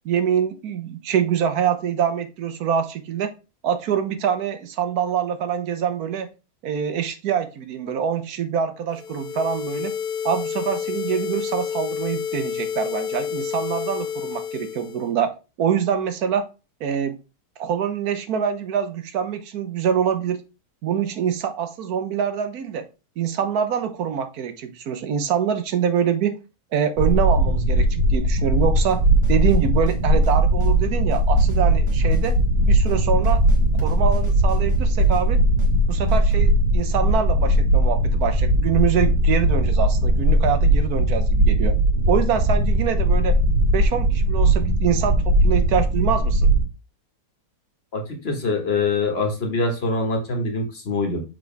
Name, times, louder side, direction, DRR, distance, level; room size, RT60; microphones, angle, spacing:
voice 1, 0.0-3.3 3.6-6.3 6.6-9.9 10.2-15.3 15.6-16.5 16.8-17.2 17.6-20.4 20.8-22.9 23.2-26.4 26.7-29.0 29.3-32.4 32.7-33.4 33.8-35.4 35.9-41.8 42.1-43.4 43.7-46.5, right 8 dB, 70° right, 10 dB, 1.3 m, -25 dB
sound 1, 8.9-15.1, left 8 dB, 75° left, 1.5 m, -29 dB
sound 2, 27.0-46.6, right 1 dB, 55° right, 1.8 m, -19 dB
sound 3, 28.4-36.3, right 2 dB, 20° right, 1.2 m, -36 dB
voice 2, 47.9-51.2, left 3 dB, 40° left, 4 dB, 1.6 m, -24 dB
6.3 x 4.6 x 3.3 m, 0.29 s
omnidirectional pair, 1.7 m